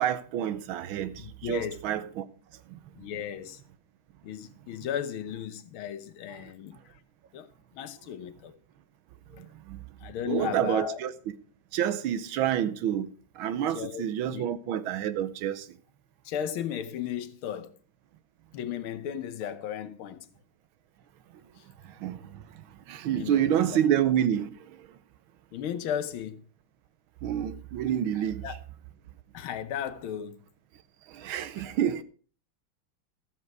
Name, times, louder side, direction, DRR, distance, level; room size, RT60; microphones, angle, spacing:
voice 1, 0.0-2.3 2.7-2.8 9.7-9.8 10.3-11.1 11.7-13.1 13.4-15.7 22.0-22.4 22.9-24.5 27.2-28.4 31.1-32.0, right 10 dB, 80° right, 1.6 m, -28 dB
voice 2, 1.2-1.8 2.9-3.6 4.2-7.0 7.3-7.5 7.7-8.5 9.3-9.5 10.0-11.0 13.7-14.0 14.3-14.5 16.2-17.8 18.5-20.3 21.6-21.7 23.1-23.6 25.5-26.4 28.1-28.6 29.3-30.4, left 9 dB, 85° left, 1.8 m, -35 dB
13.5 x 7.3 x 4.7 m
omnidirectional pair, 2.2 m